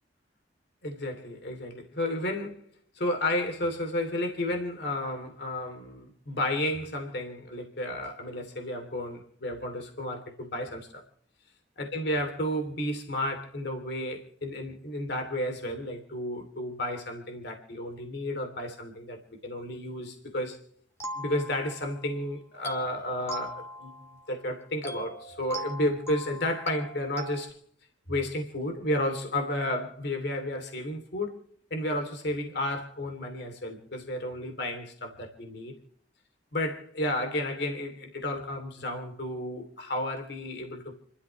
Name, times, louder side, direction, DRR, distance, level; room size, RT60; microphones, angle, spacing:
voice 1, 0.8-2.6 2.9-11.0 11.8-20.6 21.1-27.6 28.1-31.3 31.7-35.8 36.5-41.0, left 1 dB, 65° left, 2.7 m, -32 dB
sound 1, 21.0-22.1 22.6-24.4 24.8-27.5, right 1 dB, 15° left, 2.1 m, -40 dB
30.0 x 12.5 x 3.1 m
head